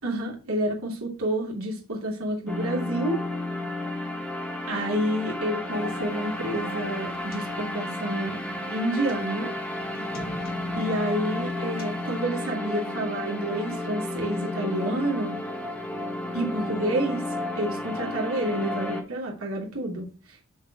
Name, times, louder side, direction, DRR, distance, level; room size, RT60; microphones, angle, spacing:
voice 1, 0.0-3.2 4.7-8.4 8.7-9.5 10.7-15.4 16.3-17.2 17.5-20.1, right 1 dB, 75° right, -1 dB, 2.7 m, -29 dB
sound 1, 2.5-19.0, left 1 dB, 5° left, 1.1 m, -32 dB
sound 2, 5.7-12.2, left 1 dB, 40° left, 1.3 m, -44 dB
6.9 x 4.6 x 4.6 m, 0.36 s
head